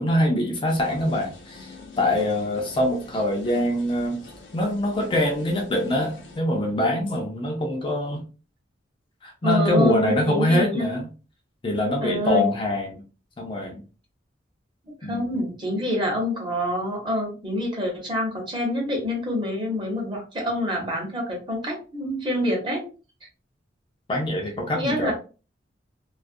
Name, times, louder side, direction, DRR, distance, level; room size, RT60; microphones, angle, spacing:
voice 1, 0.0-4.2 4.5-8.2 9.2-11.1 11.6-13.0 13.4-13.8 15.0-15.4 24.1-25.1, left 1 dB, 25° left, 1 dB, 0.4 m, -24 dB
sound 1, 0.7-6.4, left 3 dB, 75° left, 0.6 m, -45 dB
voice 2, 9.4-10.9 12.0-12.5 15.0-22.9 24.7-25.1, left 1 dB, 25° right, 0 dB, 0.8 m, -26 dB
2.4 x 2.1 x 2.5 m, 0.34 s
head